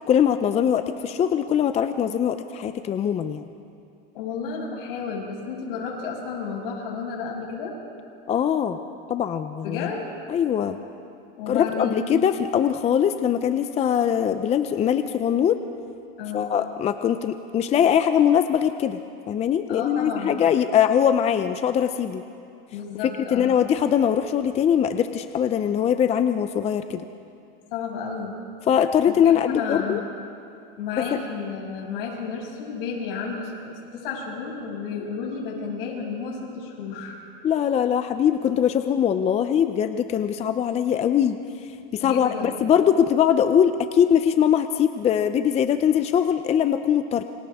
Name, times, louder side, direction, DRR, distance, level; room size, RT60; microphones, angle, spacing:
voice 1, 0.1-3.4 8.3-8.8 9.1-9.9 10.3-10.8 11.5-15.6 16.3-19.0 19.3-22.2 23.3-27.0 28.7-30.0 31.1-31.2 37.4-41.4 41.9-47.2, left 9 dB, 20° left, 9 dB, 0.6 m, -22 dB
voice 2, 4.1-7.7 9.6-10.1 11.4-12.1 16.2-16.5 19.7-20.3 22.7-23.5 27.7-28.3 29.1-30.0 30.8-37.2 42.0-42.6, left 5 dB, 75° left, -2 dB, 7.1 m, -32 dB
29.0 x 26.0 x 3.6 m, 2.5 s
supercardioid pair, 130°, 29 cm